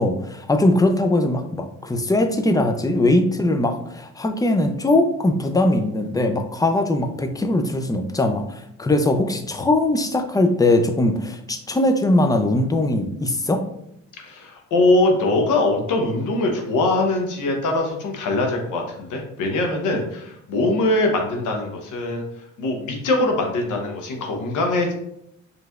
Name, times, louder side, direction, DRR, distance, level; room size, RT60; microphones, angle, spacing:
voice 1, 0.0-13.6, left 2 dB, 10° left, 6 dB, 0.5 m, -20 dB
voice 2, 14.2-24.9, left 2 dB, 80° left, 2 dB, 1.0 m, -22 dB
4.7 x 3.3 x 2.4 m, 0.76 s
cardioid pair, 90°, 30 cm